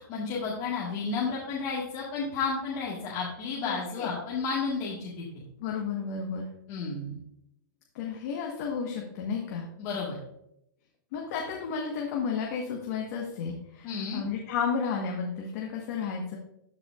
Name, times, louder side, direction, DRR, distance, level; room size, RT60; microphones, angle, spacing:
voice 1, 0.1-5.2 6.7-7.2 9.8-10.2 13.8-14.2, left 4 dB, 35° left, -5 dB, 1.7 m, -32 dB
voice 2, 3.6-4.1 5.6-6.5 7.9-9.7 11.1-16.4, left 6 dB, 50° left, 0 dB, 1.3 m, -32 dB
13.0 x 4.9 x 2.5 m, 0.79 s
hypercardioid pair, 145°, 11 cm